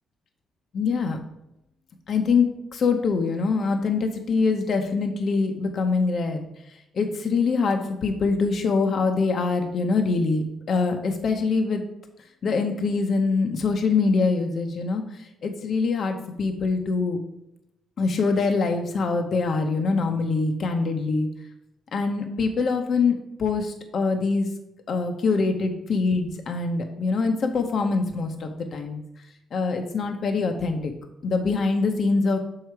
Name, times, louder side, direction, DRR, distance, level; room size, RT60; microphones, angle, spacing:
voice 1, 0.7-1.2 2.1-6.4 7.0-11.8 12.4-15.0 15.4-17.2 18.0-21.3 21.9-24.5 24.9-29.0 29.5-30.9 31.2-32.4, left 4 dB, 55° left, 4 dB, 0.7 m, -24 dB
6.4 x 4.8 x 4.6 m, 0.86 s
cardioid pair, 90°, 0 cm